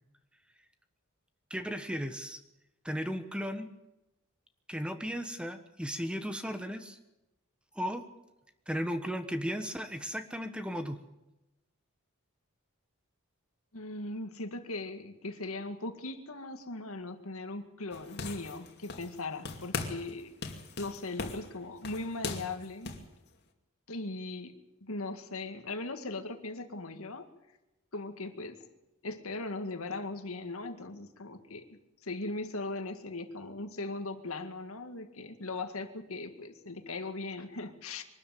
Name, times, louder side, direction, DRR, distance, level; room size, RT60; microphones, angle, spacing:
voice 1, 1.5-2.4 2.8-3.7 4.7-7.0 7.7-8.1 8.7-11.0, equal, 5° right, 8 dB, 1.2 m, -35 dB
voice 2, 13.7-20.3 20.8-23.0 23.9-27.3 27.9-28.7 29.0-31.7 32.0-38.1, left 2 dB, 75° left, 7 dB, 2.0 m, -39 dB
sound 1, 17.9-19.2 19.5-20.1 20.4-23.1, left 4 dB, 50° left, 2.5 m, -39 dB
23.5 x 13.0 x 9.3 m, 0.97 s
head